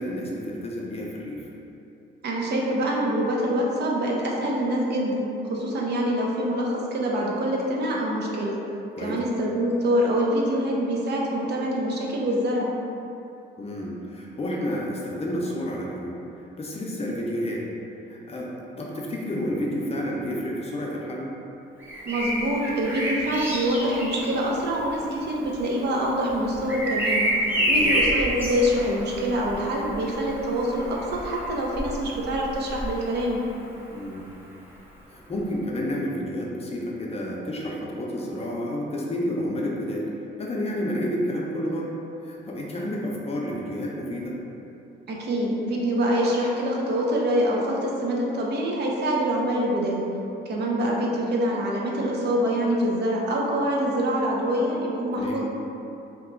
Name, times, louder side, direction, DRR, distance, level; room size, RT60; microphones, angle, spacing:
voice 1, 0.0-1.5 9.0-9.2 13.6-17.6 18.1-18.5 18.8-21.3 27.6-28.0 33.9-34.3 35.1-40.1 40.4-41.9 42.2-44.4 55.1-55.4, equal, 30° left, -3 dB, 0.6 m, -30 dB
voice 2, 2.2-8.6 9.0-12.7 22.0-27.3 27.7-33.4 45.1-50.0 50.5-55.4, equal, 55° right, -3 dB, 0.6 m, -25 dB
Bird vocalization bird call bird song, 21.8-33.6 35.3-35.5, equal, 10° right, 0.7 m, -29 dB
2.9 x 2.3 x 3.6 m, 2.9 s
cardioid pair, 90°, 20 cm